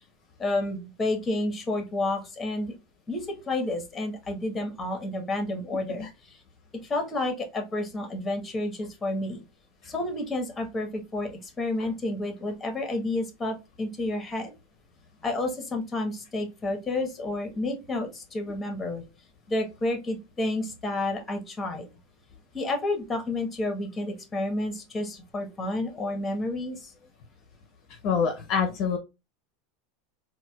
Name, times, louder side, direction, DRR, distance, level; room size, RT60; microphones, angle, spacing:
voice 1, 0.4-2.7 3.1-6.4 6.8-9.4 9.8-14.5 15.2-19.0 19.5-21.9 22.5-26.9, left 2 dB, 20° left, 5 dB, 1.1 m, -30 dB
voice 2, 28.0-29.0, left 6 dB, 55° left, 4 dB, 0.7 m, -25 dB
4.0 x 2.3 x 2.3 m, 0.26 s
hypercardioid pair, 100°, 0 cm